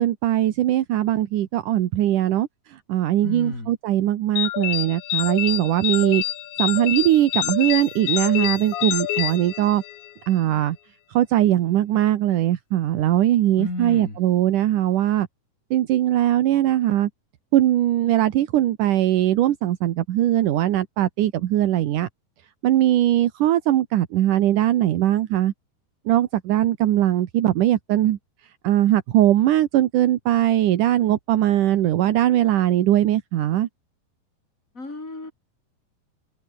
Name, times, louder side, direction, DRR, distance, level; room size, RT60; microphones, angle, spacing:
voice 1, 0.0-6.2 6.6-9.8 10.3-10.8 11.1-15.3 15.7-17.1 17.5-22.1 22.6-25.5 26.1-28.2 28.6-33.7, right 13 dB, 65° right, 2.2 m, -20 dB
voice 2, 3.2-3.7 13.6-14.2 34.7-35.3, left 2 dB, 15° left, 6.0 m, -31 dB
sound 1, 4.4-10.1, left 13 dB, 85° left, 3.9 m, -27 dB
omnidirectional pair, 5.0 m